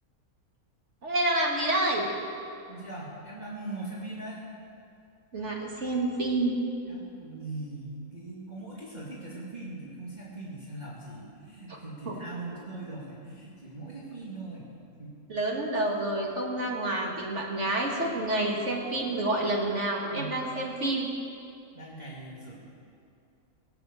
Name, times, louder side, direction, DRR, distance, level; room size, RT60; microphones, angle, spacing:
voice 1, 1.0-2.1 5.3-6.6 12.1-12.2 15.3-21.1, right 2 dB, 50° right, -1 dB, 2.5 m, -28 dB
voice 2, 2.7-4.4 6.9-14.7 15.0-15.2 20.1-20.4 21.7-22.6, right 2 dB, 25° right, -8 dB, 2.5 m, -40 dB
18.0 x 8.8 x 8.1 m, 2.5 s
omnidirectional pair, 1.6 m